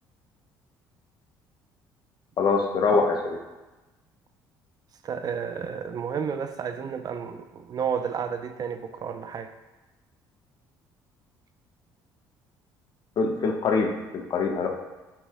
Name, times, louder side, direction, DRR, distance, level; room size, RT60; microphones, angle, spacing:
voice 1, 2.4-3.4 13.2-14.7, left 4 dB, 55° left, 2 dB, 1.0 m, -24 dB
voice 2, 5.0-9.5, right 7 dB, 45° right, 8 dB, 0.5 m, -31 dB
8.0 x 5.9 x 2.2 m, 1.1 s
supercardioid pair, 70°, 9 cm